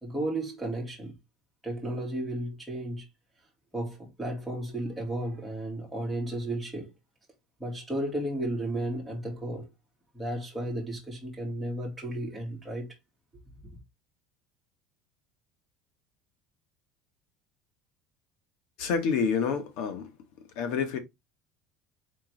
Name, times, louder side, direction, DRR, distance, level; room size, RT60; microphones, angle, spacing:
voice 1, 0.0-1.1 1.6-3.0 3.7-6.9 7.6-9.7 10.1-12.9, right 1 dB, ahead, 1.7 m, -33 dB
voice 2, 18.8-20.1 20.6-21.0, left 6 dB, 60° left, 1.2 m, -28 dB
4.5 x 3.6 x 3.2 m
cardioid pair, 170°, 0 cm